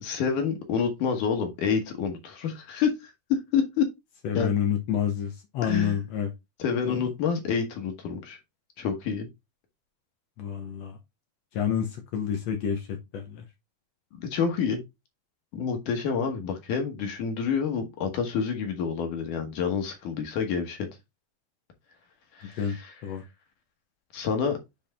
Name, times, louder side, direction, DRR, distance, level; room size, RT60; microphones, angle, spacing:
voice 1, 0.0-3.9 4.3-4.5 5.6-6.0 6.6-8.4 8.8-9.3 14.2-14.8 15.5-20.9 22.4-22.9 24.1-24.6, left 6 dB, 65° left, 2.5 m, -28 dB
voice 2, 4.2-6.3 6.8-7.1 10.4-11.0 11.5-13.4 22.4-23.2, left 8 dB, 90° left, 1.4 m, -29 dB
7.8 x 4.4 x 3.5 m
omnidirectional pair, 4.4 m